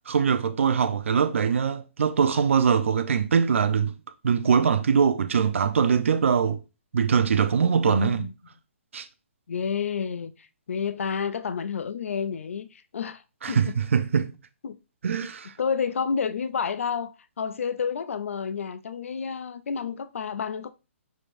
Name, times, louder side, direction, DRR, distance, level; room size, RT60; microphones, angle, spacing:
voice 1, 0.1-3.9 4.2-6.6 6.9-8.2 8.9-9.1 13.4-14.3 15.0-15.5, right 6 dB, 70° right, 0.6 m, -22 dB
voice 2, 7.8-8.3 9.5-13.2 13.5-13.7 14.6-14.8 15.2-15.3 15.6-20.7, left 6 dB, 75° left, 0.4 m, -30 dB
6.2 x 3.3 x 2.5 m
hypercardioid pair, 165°, 7 cm